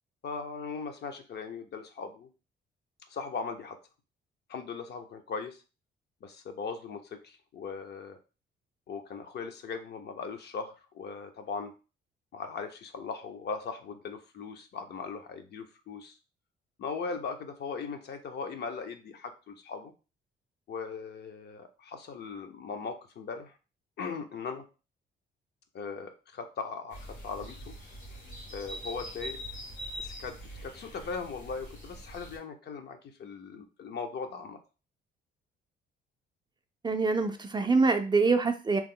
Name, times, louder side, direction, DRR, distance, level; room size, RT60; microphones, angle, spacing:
voice 1, 0.2-2.3 3.1-3.8 4.5-5.6 6.2-8.2 8.9-11.7 12.3-16.1 16.8-19.9 20.7-23.5 24.0-24.6 25.7-27.8 28.5-29.4 30.0-34.6, left 5 dB, 55° left, 6 dB, 0.6 m, -39 dB
sound 1, 26.9-32.4, equal, 85° left, 1.6 m, -43 dB
voice 2, 36.8-38.8, right 4 dB, 20° right, 6 dB, 0.4 m, -25 dB
3.0 x 2.0 x 3.6 m, 0.33 s
cardioid pair, 90°, 20 cm